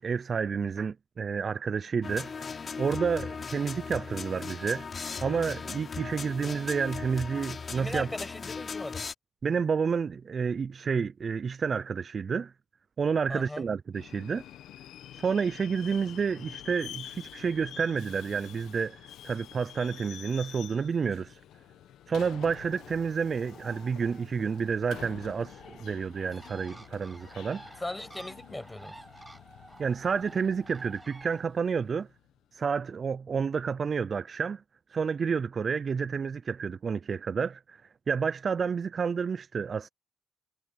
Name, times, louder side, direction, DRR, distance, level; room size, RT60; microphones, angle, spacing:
voice 1, 0.0-2.3 2.8-4.9 5.2-8.1 9.4-12.5 13.0-14.4 15.2-21.4 22.1-27.6 29.8-32.1 32.5-34.6 34.9-37.8 38.1-39.9, right 6 dB, 45° right, 0.4 m, -30 dB
sound 1, 2.0-9.1, left 5 dB, 40° left, 3.9 m, -38 dB
voice 2, 7.7-9.1 13.3-13.6 27.8-29.0, left 1 dB, 10° left, 6.6 m, -38 dB
Subway metro underground, 13.9-32.4, left 11 dB, 80° left, 1.0 m, -48 dB
Bird, 22.2-31.4, right 2 dB, 15° right, 7.1 m, -52 dB
cardioid pair, 90°, 0 cm